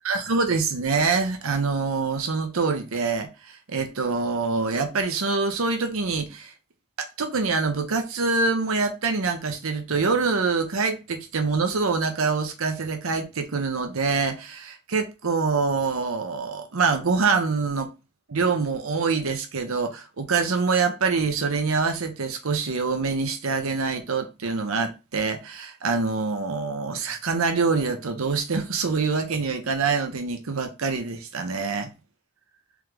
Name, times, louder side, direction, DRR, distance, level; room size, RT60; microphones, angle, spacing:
voice 1, 0.0-6.5 7.2-17.9 18.3-31.9, right 4 dB, 85° right, 0.8 m, -25 dB
3.6 x 3.3 x 3.2 m
head